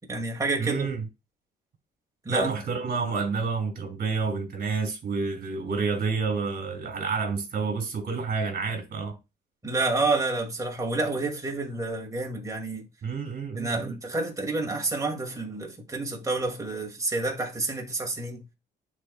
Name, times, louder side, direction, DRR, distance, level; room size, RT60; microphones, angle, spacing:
voice 1, 0.1-1.0 2.2-2.5 9.6-12.8 13.5-18.4, right 3 dB, 15° right, 2.2 m, -29 dB
voice 2, 0.6-1.0 2.3-9.2 13.0-13.9, right 4 dB, 45° right, 2.7 m, -29 dB
10.5 x 4.2 x 2.3 m
cardioid pair, 90°, 20 cm